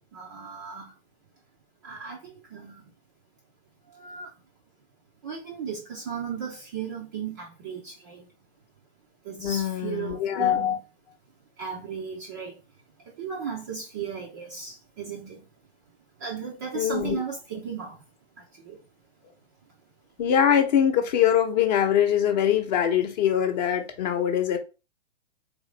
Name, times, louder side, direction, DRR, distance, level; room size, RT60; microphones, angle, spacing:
voice 1, 0.1-0.9 1.8-2.8 3.9-4.3 5.2-8.3 9.2-10.8 11.6-12.6 13.2-15.4 16.2-18.0 18.7-18.8, right 6 dB, 20° right, 0.3 m, -35 dB
voice 2, 9.4-10.8 16.7-17.2 20.2-24.6, left 9 dB, 35° left, 0.8 m, -23 dB
3.8 x 3.0 x 3.2 m
hypercardioid pair, 130°, 36 cm